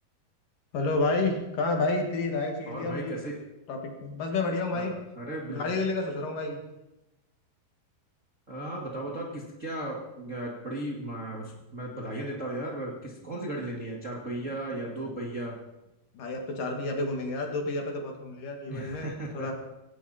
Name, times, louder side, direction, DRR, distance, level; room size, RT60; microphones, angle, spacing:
voice 1, 0.7-3.2 3.7-4.9 5.5-6.6 16.1-19.5, left 2 dB, 60° left, 2 dB, 3.5 m, -30 dB
voice 2, 2.7-3.4 4.7-5.6 8.5-15.6 18.7-19.5, right 1 dB, 25° right, -2 dB, 1.8 m, -36 dB
18.5 x 17.0 x 4.3 m, 0.97 s
omnidirectional pair, 4.5 m